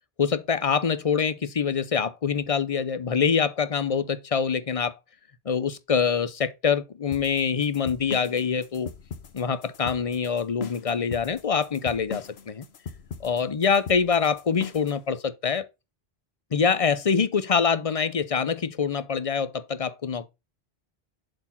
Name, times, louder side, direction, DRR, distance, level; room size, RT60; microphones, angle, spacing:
voice 1, 0.2-5.0 5.5-8.9 9.3-12.7 13.2-15.7 16.5-20.3, left 6 dB, 40° left, 0.7 m, -25 dB
sound 1, 7.1-15.0, left 6 dB, 85° left, 1.2 m, -39 dB
7.6 x 4.6 x 5.7 m
omnidirectional pair, 1.0 m